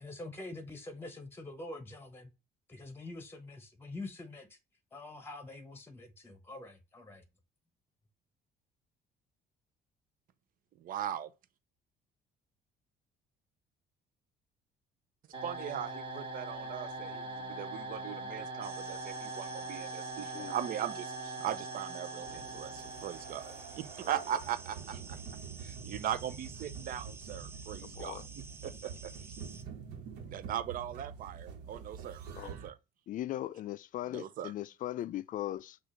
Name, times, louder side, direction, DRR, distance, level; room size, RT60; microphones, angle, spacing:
voice 1, 0.0-2.3 2.7-4.6 4.9-7.2, left 2 dB, 15° left, 1.0 m, -45 dB
voice 2, 10.8-11.3 15.4-25.2 25.6-29.1 30.3-32.8 34.1-34.5, right 10 dB, 55° right, 0.6 m, -39 dB
sound 1, 15.3-24.2, right 2 dB, 30° right, 2.3 m, -42 dB
sound 2, 18.6-29.6, right 3 dB, 15° right, 0.5 m, -52 dB
sound 3, 22.2-32.7, right 6 dB, 85° right, 1.2 m, -46 dB
voice 3, 27.8-28.3 32.4-32.5 33.1-35.8, left 13 dB, 50° left, 0.4 m, -39 dB
6.2 x 2.5 x 3.1 m
cardioid pair, 110°, 17 cm